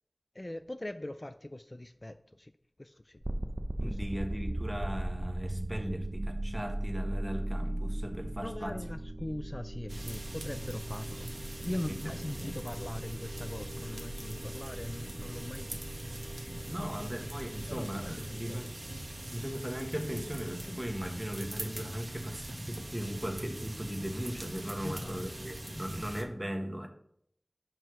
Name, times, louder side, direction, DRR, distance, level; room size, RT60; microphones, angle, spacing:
voice 1, 0.3-2.5 2.8-3.2 3.8-4.0 8.4-15.8 16.8-17.3 17.7-18.7 24.8-25.2, left 1 dB, 40° left, 10 dB, 0.3 m, -41 dB
sound 1, 3.2-20.1, right 1 dB, 40° right, 0.6 m, -39 dB
voice 2, 3.8-8.8 11.7-12.0 12.4-12.5 16.5-18.7 19.3-26.9, equal, 15° right, 3 dB, 1.3 m, -38 dB
sound 2, 9.9-26.2, right 1 dB, 60° right, 1.0 m, -42 dB
5.6 x 4.7 x 6.0 m, 0.68 s
wide cardioid pair, 45°, 0 cm